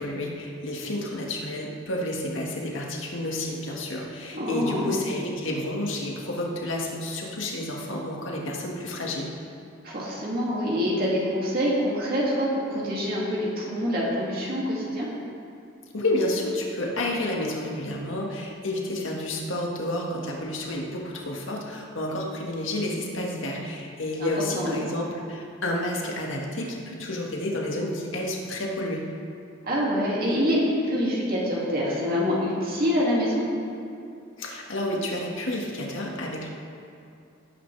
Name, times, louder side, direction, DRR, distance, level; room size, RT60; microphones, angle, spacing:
voice 1, 0.0-9.3 15.9-29.0 34.4-36.5, left 1 dB, 90° left, -1 dB, 1.8 m, -30 dB
voice 2, 4.3-4.9 9.8-15.1 24.2-24.8 29.7-30.6 30.9-33.4, equal, 50° right, -5 dB, 2.5 m, -26 dB
17.5 x 9.5 x 3.4 m, 2.5 s
head